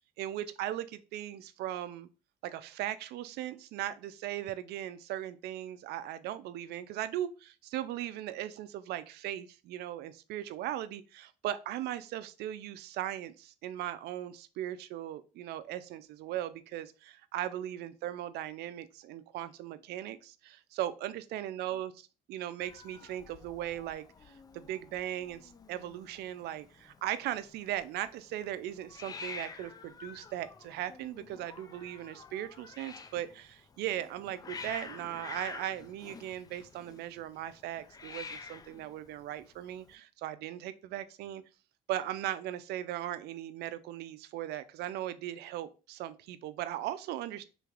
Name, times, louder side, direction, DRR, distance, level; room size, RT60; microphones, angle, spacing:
voice 1, 0.2-2.1 2.4-41.4 41.9-47.4, right 12 dB, 75° right, 14 dB, 0.4 m, -38 dB
Hiss, 22.6-39.9, left 5 dB, 20° left, 0.3 m, -49 dB
3.4 x 3.2 x 2.4 m, 0.33 s
cardioid pair, 110°, 17 cm